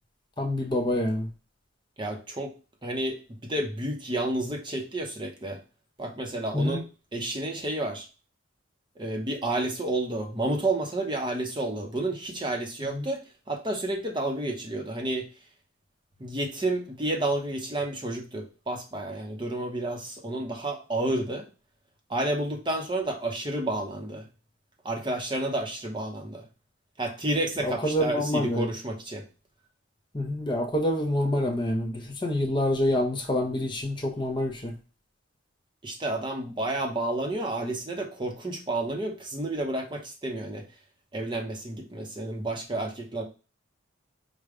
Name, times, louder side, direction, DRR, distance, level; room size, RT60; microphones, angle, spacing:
voice 1, 0.4-1.3 6.5-6.8 12.9-13.1 27.6-28.7 30.1-34.7, left 1 dB, 20° left, 0.6 m, -27 dB
voice 2, 2.0-2.5 2.8-5.6 6.0-6.9 7.1-8.1 9.0-15.3 16.2-21.5 22.1-24.2 24.8-26.4 27.0-29.2 35.8-40.6 41.1-43.2, right 1 dB, 20° right, 0.7 m, -30 dB
5.0 x 2.1 x 4.7 m
head